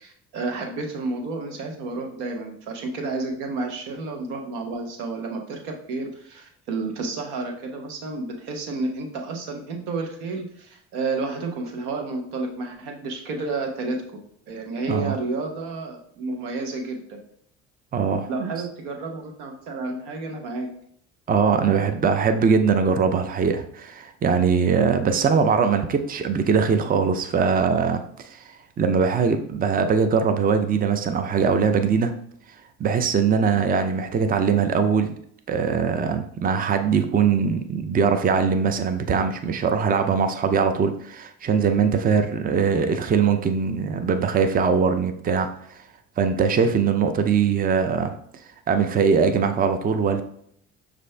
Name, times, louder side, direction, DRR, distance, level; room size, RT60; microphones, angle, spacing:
voice 1, 0.0-17.2 18.3-20.7, right 3 dB, 90° right, 3 dB, 0.9 m, -31 dB
voice 2, 17.9-18.5 21.3-32.1 32.8-35.1 35.5-45.8 46.2-48.1 48.7-50.2, right 6 dB, 30° right, 8 dB, 0.5 m, -21 dB
6.3 x 2.6 x 3.3 m, 0.67 s
supercardioid pair, 80°, 31 cm